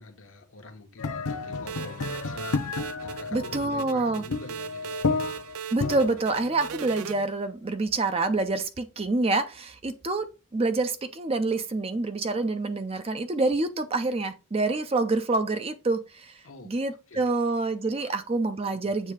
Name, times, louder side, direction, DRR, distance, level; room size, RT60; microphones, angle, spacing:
voice 1, 0.0-2.6 3.0-5.1 16.4-17.5 17.9-18.2 18.7-18.9, left 3 dB, 65° left, 1.0 m, -46 dB
sound 1, 1.0-7.3, left 4 dB, 90° left, 0.7 m, -32 dB
sound 2, 1.7-7.1, right 7 dB, 85° right, 0.4 m, -39 dB
voice 2, 3.3-4.2 5.7-10.3 10.5-16.3 16.6-19.1, right 3 dB, 25° right, 0.4 m, -27 dB
7.4 x 2.7 x 4.8 m
head